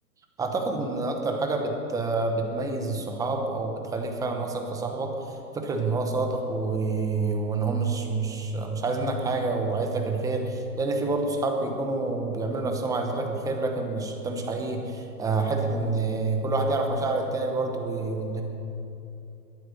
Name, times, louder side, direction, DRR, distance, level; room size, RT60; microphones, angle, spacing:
voice 1, 0.4-18.4, right 3 dB, 5° right, 3 dB, 0.9 m, -28 dB
21.5 x 8.9 x 6.6 m, 2.8 s
hypercardioid pair, 150°, 48 cm